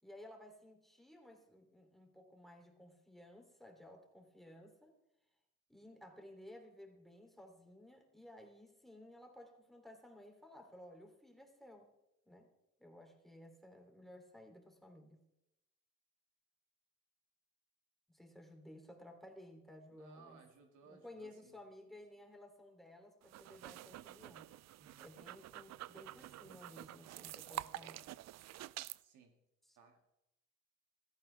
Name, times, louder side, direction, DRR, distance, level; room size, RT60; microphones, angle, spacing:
voice 1, 0.0-4.9 5.7-11.9 12.2-12.5 12.8-15.2 18.1-20.4 20.8-24.5 25.0-28.1 29.6-29.8, left 1 dB, ahead, 4 dB, 3.0 m, -56 dB
voice 2, 19.9-21.5 24.8-25.1 29.0-29.3 29.8-30.1, right 5 dB, 85° right, 4 dB, 2.1 m, -62 dB
sound 1, 23.2-29.0, right 15 dB, 60° right, 0.4 m, -48 dB
16.0 x 13.5 x 3.4 m, 0.86 s
cardioid pair, 90°, 30 cm